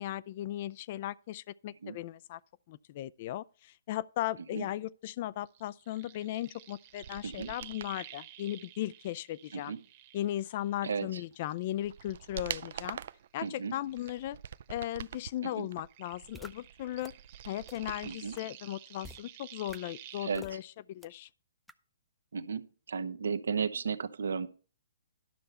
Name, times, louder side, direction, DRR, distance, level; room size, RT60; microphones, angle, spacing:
voice 1, 0.0-2.4 2.7-9.8 10.1-13.0 13.3-14.4 14.7-17.1 17.5-21.3, left 13 dB, 45° left, 0.4 m, -37 dB
sound 1, 5.4-11.0 11.3-14.7 14.9-20.3, right 12 dB, 35° right, 1.3 m, -52 dB
sound 2, 6.9-8.0 11.0-11.1 11.6-13.3 13.8-15.3 15.7-18.4 18.7-18.8, right 9 dB, 60° right, 0.4 m, -44 dB
voice 2, 13.4-13.7 15.4-15.7 18.0-18.4 20.2-20.4 22.3-24.5, right 6 dB, 75° right, 0.8 m, -34 dB
sound 3, 16.3-16.5 17.0-17.1 17.7-17.8 18.4-18.5 19.0-19.2 19.7-19.8 20.3-20.5 21.0-21.1 21.7-21.8, equal, ahead, 0.6 m, -47 dB
12.0 x 6.6 x 4.3 m
figure-of-eight pair, 130°, 0 cm